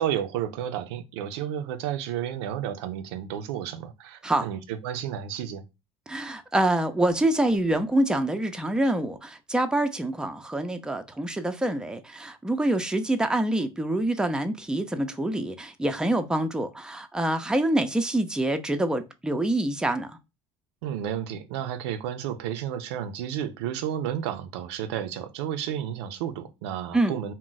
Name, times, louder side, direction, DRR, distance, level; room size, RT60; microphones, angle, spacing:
voice 1, 0.0-5.6 20.8-27.3, right 10 dB, 85° right, 0.4 m, -32 dB
voice 2, 6.1-20.2 26.9-27.2, right 1 dB, 5° right, 0.4 m, -26 dB
2.3 x 2.1 x 3.8 m
supercardioid pair, 85°, 14 cm